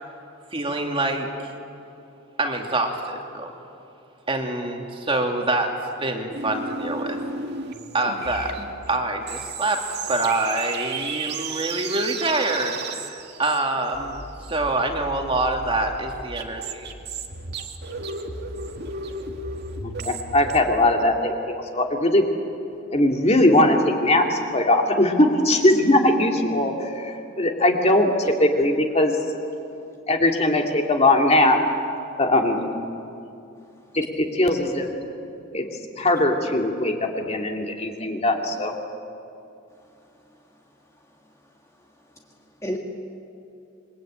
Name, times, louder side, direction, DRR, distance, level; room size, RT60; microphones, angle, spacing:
voice 1, 0.5-1.3 2.4-3.5 4.3-5.7 6.0-7.2 7.9-8.6 8.9-9.8 10.1-16.9, right 2 dB, 25° right, 2 dB, 2.5 m, -26 dB
sound 1, 6.3-20.6, right 4 dB, 50° right, 2.1 m, -34 dB
voice 2, 19.8-22.3 22.9-28.1 28.4-29.2 30.1-31.6 32.2-32.7 33.9-34.9 35.5-35.7 36.0-38.7, left 1 dB, 30° left, 2 dB, 2.4 m, -20 dB
voice 3, 40.0-40.4 41.0-41.3 41.7-42.8, equal, 15° left, 0 dB, 1.9 m, -38 dB
27.5 x 23.5 x 8.9 m, 2.7 s
head